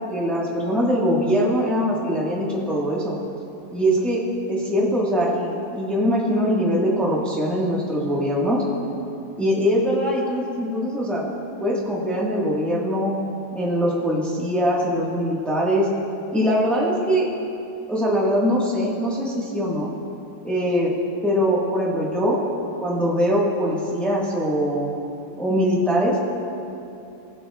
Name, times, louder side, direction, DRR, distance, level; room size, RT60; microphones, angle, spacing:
voice 1, 0.1-3.1 3.7-4.2 4.5-8.6 9.4-11.3 11.6-13.1 13.5-15.9 16.3-17.2 17.9-19.9 20.4-21.0 21.2-22.4 22.8-24.9 25.4-26.2, equal, ahead, -5 dB, 1.2 m, -22 dB
22.5 x 7.5 x 2.3 m, 2.7 s
omnidirectional pair, 1.7 m